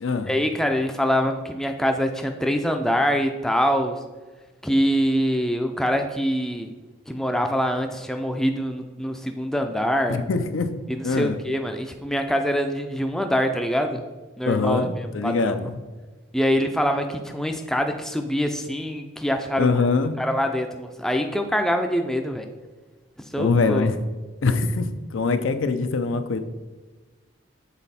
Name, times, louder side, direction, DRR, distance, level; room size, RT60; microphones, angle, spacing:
voice 1, 0.3-4.0 4.6-6.7 7.1-10.2 10.9-14.0 14.4-15.6 16.3-19.7 20.2-22.5 23.3-23.9, equal, ahead, 5 dB, 0.3 m, -24 dB
voice 2, 10.1-10.7 11.0-11.4 14.5-15.8 19.6-20.2 23.4-24.0 24.4-26.4, left 4 dB, 85° left, 9 dB, 0.5 m, -23 dB
7.2 x 3.9 x 4.2 m, 1.3 s
head